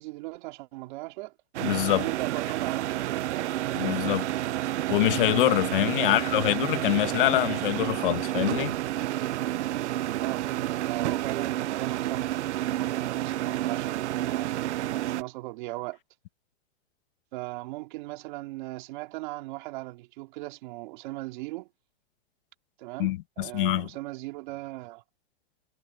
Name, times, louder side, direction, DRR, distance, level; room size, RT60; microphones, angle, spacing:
voice 1, 0.0-1.3 1.9-3.6 3.8-4.1 6.0-6.2 10.2-12.3 12.8-16.0 17.3-21.7 22.8-25.0, right 21 dB, 45° right, 3.0 m, -38 dB
sound 1, 1.5-15.2, right 14 dB, 80° right, 0.7 m, -30 dB
voice 2, 1.6-2.1 3.8-4.3 4.9-8.7 23.0-23.9, left 17 dB, 50° left, 1.4 m, -25 dB
supercardioid pair, 165°, 34 cm